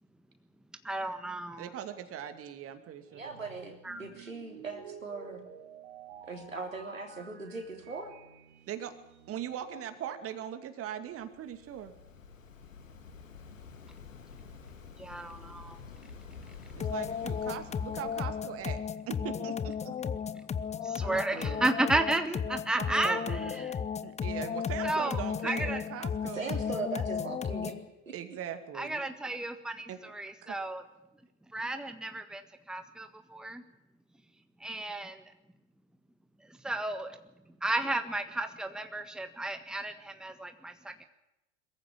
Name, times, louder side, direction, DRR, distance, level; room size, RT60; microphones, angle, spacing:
voice 1, 0.8-1.7 3.8-4.0 15.0-15.8 20.3-20.4 20.8-23.7 24.8-25.8 28.7-30.8 31.5-33.6 34.6-35.3 36.4-37.2 37.6-41.0, right 2 dB, ahead, 7 dB, 1.6 m, -33 dB
voice 2, 1.6-3.3 8.7-8.9 9.3-11.9 16.7-18.8 19.1-20.1 24.0-26.6 28.1-29.0 29.9-30.0 30.4-30.5, right 10 dB, 35° right, 8 dB, 2.5 m, -40 dB
sound 1, 3.1-10.4, right 8 dB, 60° right, 3.1 m, -52 dB
voice 3, 3.1-3.7 4.0-5.5 6.3-8.1 21.0-21.6 22.8-23.7 26.3-27.8 28.1-28.2, right 3 dB, 90° right, 3 dB, 3.5 m, -39 dB
Waves surf, 11.1-18.7, left 5 dB, 80° left, 2.1 m, -50 dB
sound 2, 16.8-27.9, left 7 dB, 15° left, 0.8 m, -34 dB
22.5 x 15.0 x 9.8 m, 0.92 s
figure-of-eight pair, 85°, 39 cm